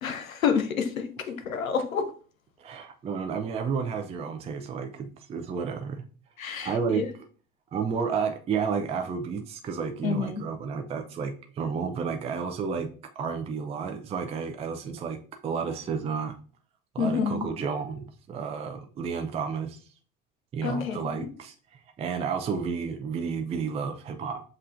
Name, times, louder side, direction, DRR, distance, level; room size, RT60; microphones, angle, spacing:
voice 1, 0.0-2.0 6.4-7.1 10.0-10.4 17.0-17.5 20.6-21.3, left 6 dB, 80° left, 0.7 m, -28 dB
voice 2, 2.6-6.0 6.6-7.0 7.7-12.9 13.2-16.4 16.9-19.8 20.5-24.4, right 6 dB, 15° right, 0.4 m, -31 dB
7.4 x 2.5 x 2.5 m
figure-of-eight pair, 65°, 40 cm